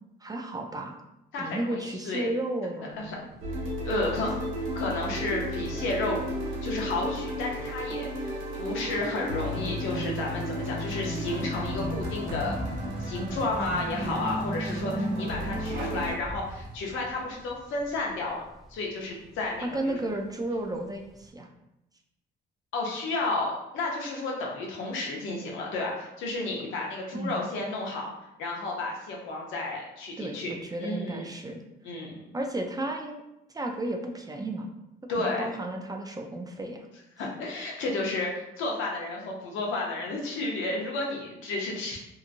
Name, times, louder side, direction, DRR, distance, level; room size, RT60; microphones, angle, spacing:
voice 1, 0.2-1.0 1.4-3.3 3.9-4.3 14.8-15.3 19.6-21.5 27.1-27.4 30.2-31.6 32.3-33.2 33.5-34.7 35.2-36.9, right 1 dB, 20° right, 2 dB, 0.4 m, -33 dB
voice 2, 1.3-2.3 3.0-3.2 3.8-4.3 4.7-6.2 6.6-12.6 13.0-14.9 15.2-18.4 18.7-20.0 22.7-28.1 28.4-30.5 30.8-31.3 31.8-32.4 35.1-35.5 37.2-42.0, left 2 dB, 85° left, -1 dB, 0.7 m, -32 dB
Thunder / Bicycle, 2.9-21.3, equal, ahead, 0.7 m, -46 dB
sound 1, 3.4-16.1, equal, 85° right, 1.0 m, -33 dB
Zipper (clothing), 8.4-16.9, right 1 dB, 50° right, 0.9 m, -46 dB
2.8 x 2.5 x 2.5 m, 0.87 s
cardioid pair, 90°, 20 cm